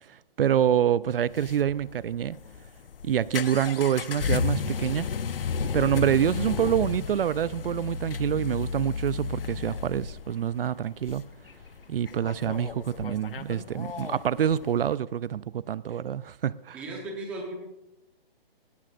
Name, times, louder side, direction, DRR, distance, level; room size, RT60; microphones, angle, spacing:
voice 1, 0.1-2.4 3.0-5.1 5.7-11.3 11.9-16.8, right 9 dB, 70° right, 0.5 m, -26 dB
sound 1, 1.1-14.9, left 6 dB, 70° left, 0.9 m, -33 dB
voice 2, 16.7-17.6, right 2 dB, 5° right, 0.9 m, -36 dB
18.5 x 17.0 x 2.5 m
hypercardioid pair, 175°, 30 cm